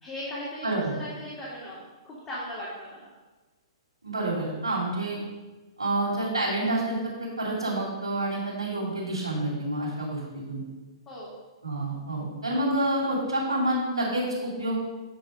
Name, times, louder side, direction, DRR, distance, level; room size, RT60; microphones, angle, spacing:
voice 1, 0.0-0.7 1.0-3.0 11.1-11.3, left 1 dB, 25° left, -7 dB, 2.2 m, -38 dB
voice 2, 4.0-5.2 5.8-7.1 7.4-10.6 11.6-14.8, right 1 dB, 80° right, -6 dB, 2.5 m, -28 dB
8.4 x 5.1 x 4.9 m, 1.2 s
figure-of-eight pair, 115°, 3 cm